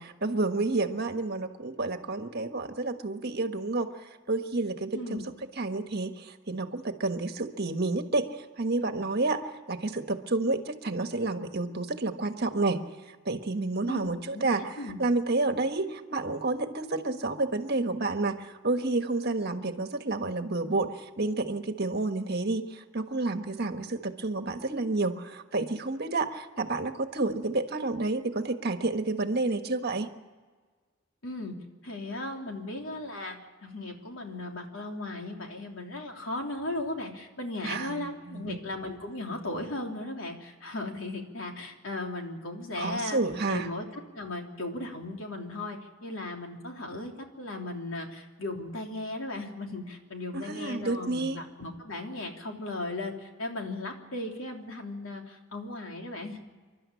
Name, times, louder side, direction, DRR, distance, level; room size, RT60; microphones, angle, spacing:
voice 1, 0.0-3.9 4.3-5.2 5.6-8.3 8.6-9.4 9.7-12.8 13.2-14.7 15.0-30.1 37.6-38.6 42.8-43.7 50.3-51.4, right 3 dB, 55° right, 7 dB, 1.5 m, -30 dB
voice 2, 4.9-5.2 13.9-15.0 31.2-31.6 31.8-43.2 43.5-56.4, left 2 dB, 90° left, 2 dB, 3.3 m, -37 dB
28.0 x 12.5 x 9.8 m, 1.4 s
head